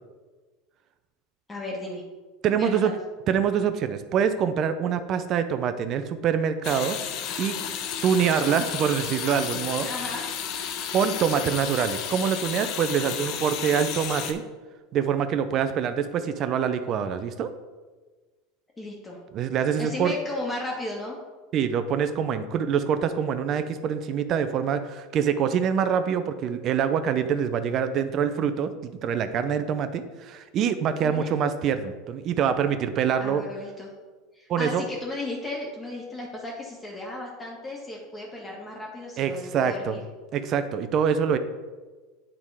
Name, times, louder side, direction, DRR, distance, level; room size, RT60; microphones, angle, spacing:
voice 1, 1.5-2.0 2.5-3.0 9.8-10.3 18.8-19.2 19.8-21.2 31.0-31.3 33.2-33.9 34.3-40.0, left 2 dB, 15° left, -2 dB, 1.5 m, -35 dB
voice 2, 2.4-2.9 3.3-7.0 7.4-7.6 8.0-9.9 10.9-14.4 14.9-17.5 19.3-20.1 21.5-33.4 34.5-34.8 39.2-40.0 40.3-41.4, right 7 dB, 45° right, 10 dB, 0.5 m, -25 dB
sound 1, 6.6-14.3, left 8 dB, 55° left, 0.8 m, -32 dB
8.8 x 3.6 x 4.8 m, 1.3 s
supercardioid pair, 110°, 0 cm